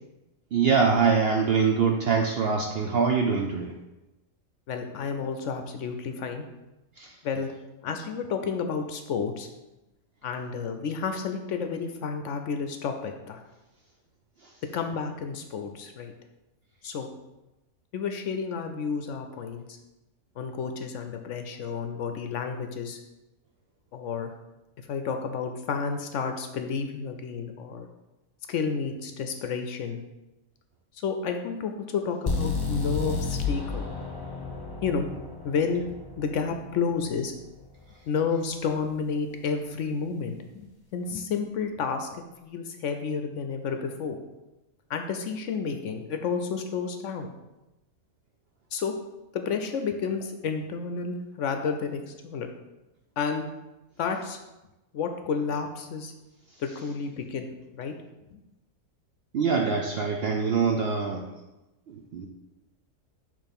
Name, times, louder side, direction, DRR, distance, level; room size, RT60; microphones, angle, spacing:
voice 1, 0.5-3.7 7.0-7.1 59.3-61.2 61.9-62.3, right 5 dB, 65° right, 2 dB, 0.6 m, -24 dB
voice 2, 4.7-6.4 7.2-7.5 7.8-9.5 10.2-13.4 14.7-16.1 16.8-17.1 17.9-19.8 20.4-23.0 23.9-24.3 24.9-27.9 28.5-30.0 30.9-33.8 34.8-35.1 35.4-35.8 36.2-37.3 38.1-40.7 40.9-44.2 44.9-47.3 48.7-49.0 49.3-52.5 53.2-53.4 54.0-54.4 54.9-56.1 56.6-57.4 57.7-57.9 58.3-58.4, left 5 dB, 65° left, 6 dB, 0.8 m, -31 dB
sound 1, 32.3-36.2, left 4 dB, 20° left, 0.6 m, -31 dB
6.6 x 3.1 x 5.2 m, 1.0 s
omnidirectional pair, 1.5 m